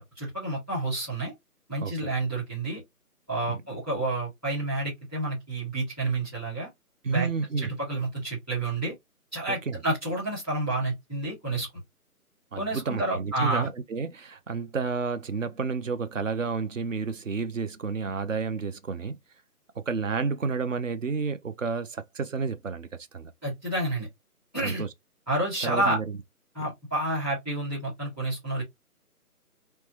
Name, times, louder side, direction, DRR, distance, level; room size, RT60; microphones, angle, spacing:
voice 1, 0.0-1.3 1.7-2.8 3.3-6.7 7.1-7.3 7.6-8.9 9.3-11.7 12.5-13.7 23.4-24.1 24.5-24.8 25.3-26.0 26.5-28.6, right 2 dB, 5° right, 1.4 m, -29 dB
voice 2, 1.8-2.1 3.5-3.6 7.0-7.7 9.5-9.8 12.5-19.2 19.8-22.9 23.1-23.3 24.6-24.9 25.6-26.2, right 4 dB, 55° right, 0.6 m, -30 dB
3.2 x 2.2 x 2.8 m
figure-of-eight pair, 160°, 45 cm